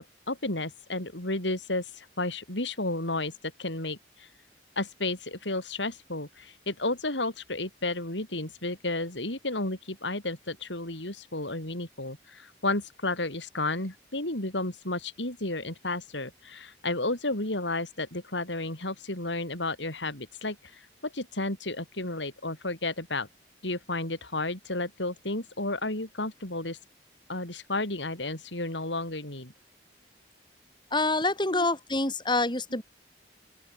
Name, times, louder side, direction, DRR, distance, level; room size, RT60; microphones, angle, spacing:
voice 1, 0.0-3.3 3.6-4.0 4.8-20.6 21.1-23.3 23.6-26.8 27.3-29.5 31.5-31.6, left 2 dB, 85° left, 6.9 m, -32 dB
voice 2, 30.9-32.8, left 2 dB, 25° left, 4.8 m, -26 dB
open air
head